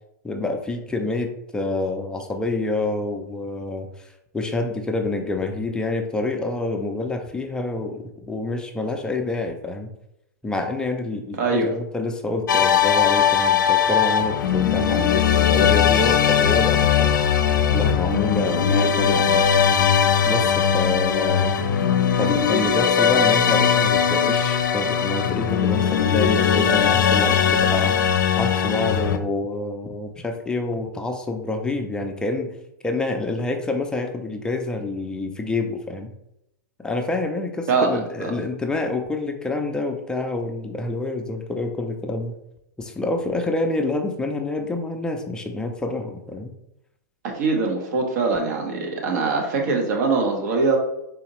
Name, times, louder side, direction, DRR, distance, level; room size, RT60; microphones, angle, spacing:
voice 1, 0.2-3.9 4.3-9.9 10.4-17.1 17.7-19.5 20.2-21.9 22.2-28.0 28.4-32.5 32.8-36.1 36.8-42.3 42.8-46.5, left 2 dB, 10° left, 3 dB, 0.4 m, -27 dB
sound 1, 12.5-29.2, left 8 dB, 85° left, 0.4 m, -19 dB
voice 2, 37.7-38.3 47.2-50.8, right 4 dB, 60° right, 2 dB, 1.0 m, -22 dB
4.0 x 2.7 x 3.0 m, 0.83 s
hypercardioid pair, 130°, 10 cm